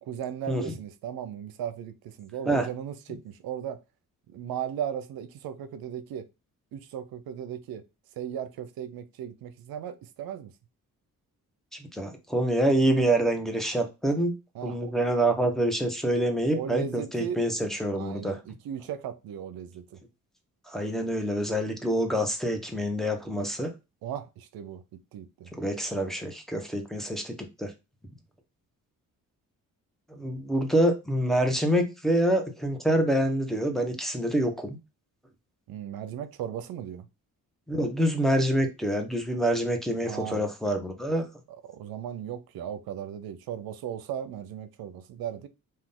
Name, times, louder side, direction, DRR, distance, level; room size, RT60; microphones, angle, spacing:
voice 1, 0.0-3.8 4.3-6.3 6.7-7.8 8.2-10.5 14.6-14.9 16.5-17.4 17.9-20.0 24.0-24.8 25.1-25.5 35.7-37.0 40.0-40.5 41.6-45.5, right 9 dB, 90° right, 0.6 m, -36 dB
voice 2, 11.9-14.3 14.6-18.4 20.7-23.7 25.5-27.7 30.2-34.8 37.7-41.2, right 1 dB, ahead, 1.1 m, -26 dB
3.8 x 2.7 x 3.6 m
cardioid pair, 70°, 35 cm